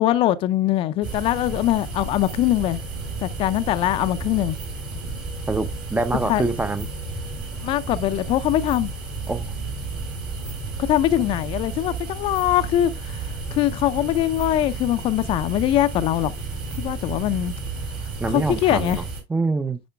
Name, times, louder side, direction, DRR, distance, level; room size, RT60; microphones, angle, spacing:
voice 1, 0.0-2.8 3.2-4.6 6.2-6.4 7.6-8.9 10.8-16.3 16.8-17.5 18.3-19.0, left 13 dB, 50° left, 0.5 m, -22 dB
sound 1, 1.0-19.2, right 3 dB, 70° right, 4.4 m, -32 dB
voice 2, 5.5-6.9 9.3-9.5 18.2-19.8, right 3 dB, 15° right, 0.6 m, -25 dB
10.0 x 4.3 x 2.2 m
hypercardioid pair, 70°, 12 cm